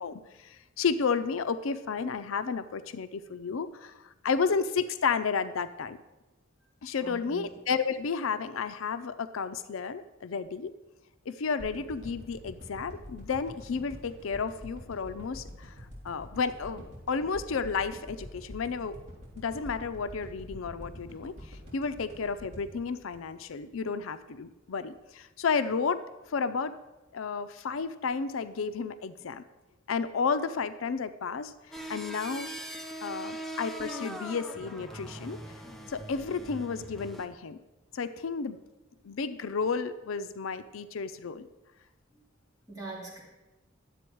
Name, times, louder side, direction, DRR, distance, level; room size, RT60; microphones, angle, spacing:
voice 1, 0.0-6.0 6.8-10.7 11.3-15.7 16.0-19.0 19.4-26.0 26.3-26.7 27.1-29.4 29.9-31.5 31.9-32.5 33.0-35.4 35.9-37.6 37.9-38.6 39.0-41.5, left 5 dB, 80° left, 12 dB, 0.5 m, -32 dB
voice 2, 7.0-7.5 42.1-42.2 42.7-43.2, right 3 dB, 20° right, -6 dB, 3.2 m, -42 dB
sound 1, 11.6-23.9 24.3-24.4, equal, 40° right, 3.5 m, -46 dB
sound 2, 31.7-37.3, right 1 dB, ahead, 0.7 m, -41 dB
11.0 x 7.9 x 4.5 m, 1.1 s
head